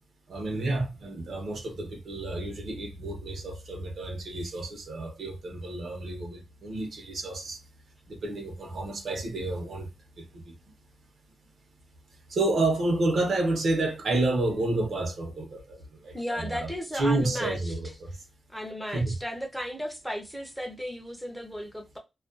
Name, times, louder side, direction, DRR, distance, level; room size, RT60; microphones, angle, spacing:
voice 1, 0.3-7.6 8.1-9.9 10.2-10.4 12.3-16.7 16.9-18.1 18.9-19.2, right 2 dB, 65° right, 0.8 m, -30 dB
voice 2, 16.1-17.7 18.5-22.0, equal, ahead, 0.5 m, -35 dB
2.3 x 2.2 x 2.4 m
wide cardioid pair, 170°, 0 cm